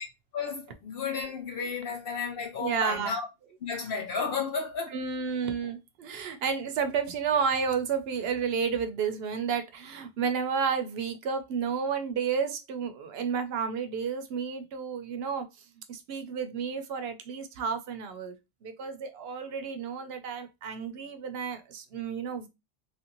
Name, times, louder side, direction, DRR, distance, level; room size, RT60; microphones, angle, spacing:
voice 1, 0.3-3.3 3.6-5.0, left 5 dB, 65° left, 0.9 m, -33 dB
voice 2, 2.6-3.1 4.9-15.5 15.9-18.3 18.6-22.5, right 6 dB, 75° right, 0.8 m, -31 dB
3.1 x 2.6 x 2.8 m
omnidirectional pair, 1.1 m